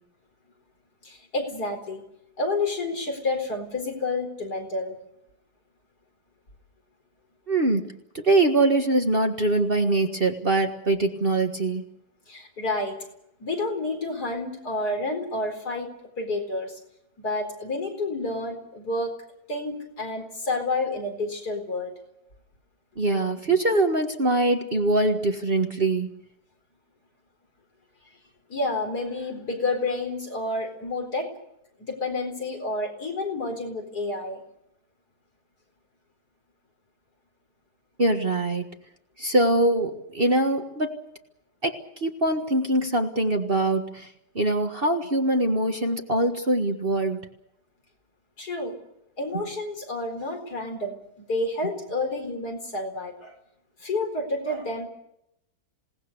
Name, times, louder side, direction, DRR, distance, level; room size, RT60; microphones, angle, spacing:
voice 1, 1.0-2.0 2.4-5.0 12.3-13.0 13.4-15.9 16.2-16.8 17.2-19.1 19.5-21.9 28.5-31.3 31.8-34.4 48.4-48.7 49.2-53.3 53.8-54.9, left 2 dB, 60° left, 3 dB, 5.0 m, -29 dB
voice 2, 7.5-11.8 23.0-26.1 38.0-38.7 39.2-41.0 41.6-44.1 44.3-47.2, right 2 dB, 35° right, 4 dB, 1.6 m, -23 dB
27.5 x 18.5 x 6.8 m, 0.80 s
omnidirectional pair, 1.9 m